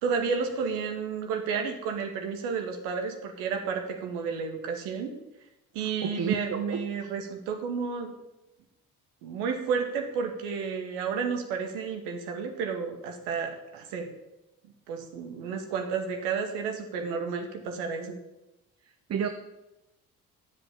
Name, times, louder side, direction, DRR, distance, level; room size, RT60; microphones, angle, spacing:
voice 1, 0.0-5.1 5.7-8.1 9.2-14.1 14.9-18.2, right 5 dB, 60° right, 4 dB, 2.0 m, -31 dB
voice 2, 6.0-6.8 19.1-19.3, right 7 dB, 35° right, 8 dB, 1.0 m, -30 dB
13.0 x 7.8 x 7.1 m, 0.96 s
figure-of-eight pair, 50°, 43 cm